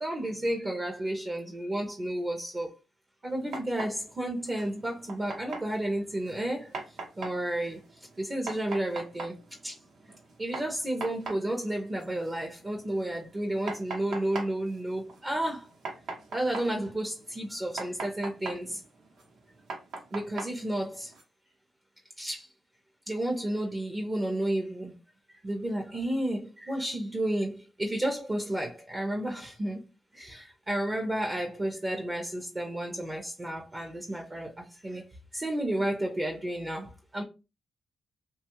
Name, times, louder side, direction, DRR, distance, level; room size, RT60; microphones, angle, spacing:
voice 1, 0.0-2.7 3.2-6.7 7.2-7.8 8.2-9.4 9.6-9.7 10.4-15.7 16.3-18.8 20.1-21.1 22.2-22.5 23.1-24.9 25.4-29.8 30.1-35.0 35.3-37.2, right 1 dB, 25° right, 0.6 m, -32 dB
sound 1, 3.3-21.2, right 3 dB, 75° right, 0.9 m, -43 dB
2.8 x 2.3 x 2.9 m
cardioid pair, 100°, 0 cm